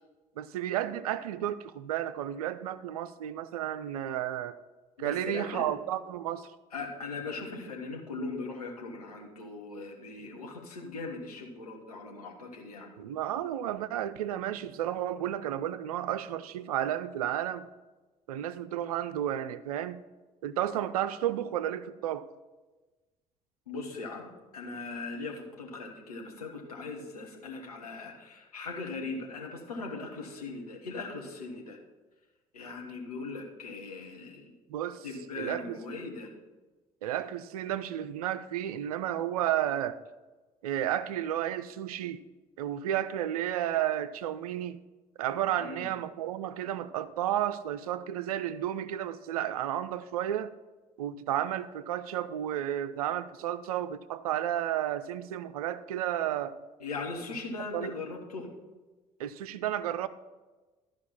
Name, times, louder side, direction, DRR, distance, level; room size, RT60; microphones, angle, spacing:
voice 1, 0.4-4.6 5.0-6.5 13.0-17.7 18.3-20.0 20.4-22.3 34.7-35.1 35.4-35.8 37.0-40.0 40.6-42.2 42.6-44.8 45.2-50.5 51.0-56.6 57.7-57.9 59.2-60.1, right 11 dB, 75° right, 0.5 m, -32 dB
voice 2, 5.0-5.7 6.7-12.9 23.7-31.8 32.5-34.5 35.0-36.3 45.6-45.9 56.8-58.5, left 3 dB, 80° left, 1.3 m, -39 dB
12.5 x 5.1 x 5.6 m
figure-of-eight pair, 50°, 19 cm